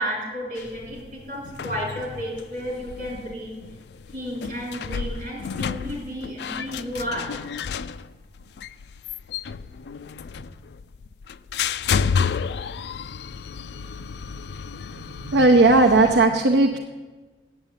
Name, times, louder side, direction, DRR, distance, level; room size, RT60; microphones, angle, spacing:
voice 1, 0.0-3.5 4.1-7.3, equal, 45° right, -2 dB, 4.1 m, -32 dB
sound 1, 0.6-16.3, left 6 dB, 65° left, 0.4 m, -31 dB
voice 2, 15.2-16.8, right 2 dB, 75° right, 2 dB, 0.7 m, -16 dB
8.2 x 7.9 x 9.0 m, 1.3 s
head